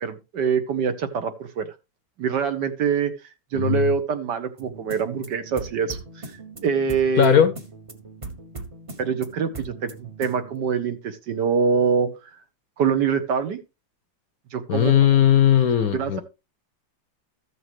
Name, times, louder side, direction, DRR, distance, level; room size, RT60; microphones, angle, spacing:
voice 1, 0.0-1.7 2.2-3.1 3.5-6.3 6.6-7.4 9.0-12.1 12.8-13.6 14.5-14.9 15.9-16.2, right 6 dB, 65° right, 1.6 m, -24 dB
voice 2, 3.5-3.9 7.2-7.5 14.7-16.2, left 9 dB, 60° left, 1.0 m, -18 dB
sound 1, 4.6-10.5, right 3 dB, 25° right, 0.8 m, -40 dB
14.0 x 6.5 x 3.0 m
omnidirectional pair, 2.1 m